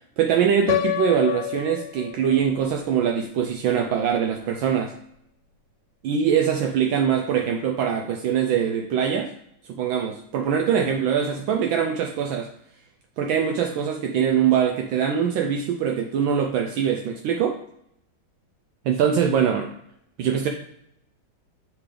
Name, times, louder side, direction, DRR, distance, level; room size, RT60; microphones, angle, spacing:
voice 1, 0.2-4.9 6.0-9.3 9.7-12.5 13.2-17.6 18.8-19.7 20.2-20.5, right 8 dB, 75° right, 3 dB, 1.3 m, -23 dB
Piano, 0.7-2.6, left 11 dB, 85° left, 1.4 m, -27 dB
8.7 x 3.9 x 3.3 m, 0.74 s
omnidirectional pair, 2.3 m